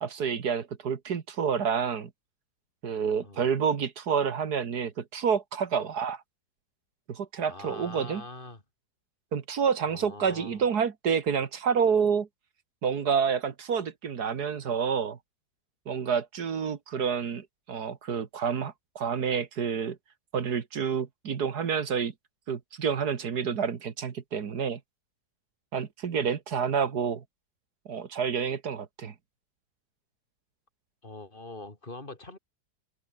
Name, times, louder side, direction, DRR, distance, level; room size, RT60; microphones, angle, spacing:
voice 1, 0.0-2.1 2.8-6.2 7.1-8.2 9.3-12.3 12.8-15.2 15.9-20.0 20.3-22.1 22.5-24.8 25.7-27.2 27.9-29.1, right 6 dB, 65° right, 2.0 m, -28 dB
voice 2, 7.5-8.6 9.9-10.6 31.0-32.4, left 2 dB, 30° left, 3.7 m, -43 dB
open air
omnidirectional pair, 1.9 m